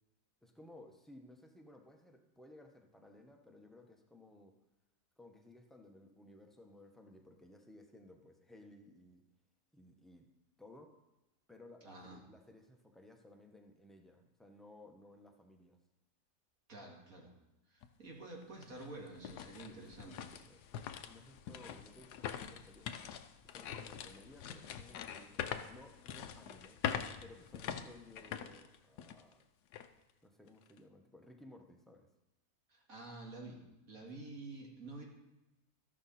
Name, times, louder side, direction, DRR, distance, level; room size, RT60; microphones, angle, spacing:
voice 1, 0.4-4.6 5.2-9.2 9.7-10.3 10.6-11.0 11.5-15.8 19.7-19.9 20.3-22.9 23.4-26.8 27.2-29.5 30.2-32.1 34.0-34.1, left 1 dB, ahead, 2 dB, 0.8 m, -58 dB
voice 2, 11.8-12.2 16.7-17.3 17.7-20.3 32.7-33.6 33.9-35.0, right 2 dB, 60° right, -1 dB, 2.4 m, -49 dB
sound 1, 17.8-17.9 18.4-29.3 29.7-29.9 30.5-30.8, left 8 dB, 85° left, 1.3 m, -44 dB
13.0 x 11.0 x 4.2 m, 0.97 s
omnidirectional pair, 1.7 m